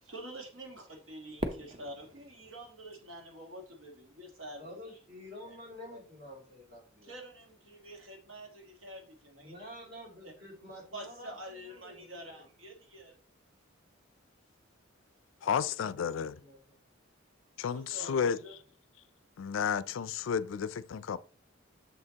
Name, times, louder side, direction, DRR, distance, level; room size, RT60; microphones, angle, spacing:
voice 1, 0.0-4.7 5.5-5.6 5.9-6.0 7.0-9.7 10.2-10.3 10.9-13.2 17.7-18.6, right 1 dB, 75° right, 1.6 m, -47 dB
Fireworks, 1.4-3.7, right 1 dB, 30° right, 0.7 m, -41 dB
voice 2, 4.6-7.1 9.3-11.4 11.6-12.5 15.4-15.5 16.4-16.8 18.0-18.3, left 1 dB, 50° right, 2.7 m, -49 dB
voice 3, 15.4-16.4 17.6-18.4 19.4-21.2, left 7 dB, 70° left, 0.4 m, -32 dB
7.0 x 6.6 x 2.8 m
head